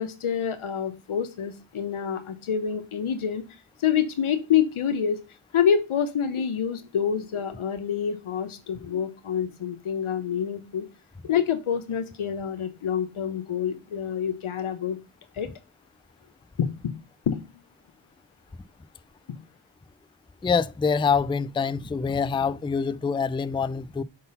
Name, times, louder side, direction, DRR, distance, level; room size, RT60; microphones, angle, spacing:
voice 1, 0.0-3.4 3.8-5.2 5.5-10.8 11.2-15.0 15.3-15.5 16.6-16.9 17.3-17.5, left 8 dB, 90° left, 1.0 m, -27 dB
voice 2, 20.4-24.0, left 5 dB, 10° left, 0.3 m, -25 dB
5.7 x 4.0 x 5.4 m
cardioid pair, 45°, 48 cm